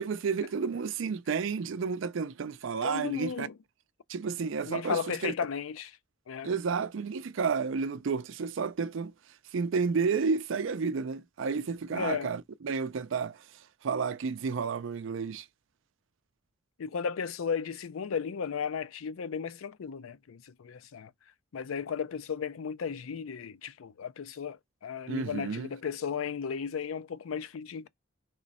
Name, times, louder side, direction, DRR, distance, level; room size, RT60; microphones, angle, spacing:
voice 1, 0.0-3.5 4.1-5.3 6.4-9.1 9.5-13.4 13.8-15.5 25.1-25.7, right 5 dB, 65° right, 0.4 m, -31 dB
voice 2, 2.8-3.5 4.7-5.9 6.3-6.5 11.9-12.3 16.8-21.1 21.5-27.9, left 6 dB, 85° left, 0.4 m, -35 dB
3.7 x 3.1 x 4.0 m
head